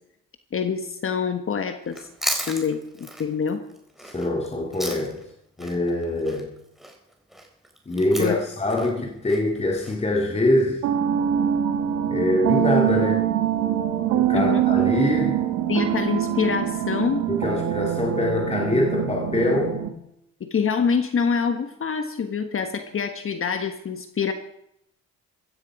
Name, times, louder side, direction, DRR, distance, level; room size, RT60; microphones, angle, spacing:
voice 1, 0.5-2.1 2.5-3.6 8.2-8.4 14.3-14.6 15.7-17.3 20.4-24.3, left 6 dB, 45° left, 7 dB, 1.4 m, -25 dB
Chewing mastication, 1.9-5.3 5.6-9.9, right 1 dB, ahead, 4.1 m, -34 dB
voice 2, 4.1-5.2 5.6-6.5 7.9-10.9 12.1-13.3 14.1-15.4 17.3-19.8, left 1 dB, 20° left, 0 dB, 2.6 m, -24 dB
sound 1, 10.8-19.9, right 10 dB, 85° right, 2.0 m, -24 dB
15.5 x 14.5 x 4.9 m, 0.77 s
cardioid pair, 90°, 30 cm